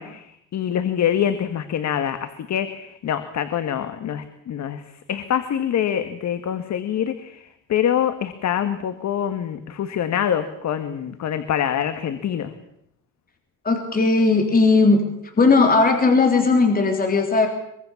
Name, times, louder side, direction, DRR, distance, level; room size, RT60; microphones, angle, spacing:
voice 1, 0.0-12.5, left 9 dB, 60° left, 10 dB, 1.8 m, -25 dB
voice 2, 13.6-15.0 15.4-17.5, left 3 dB, 30° left, 4 dB, 3.5 m, -17 dB
24.0 x 23.0 x 7.2 m, 0.76 s
cardioid pair, 130°, 31 cm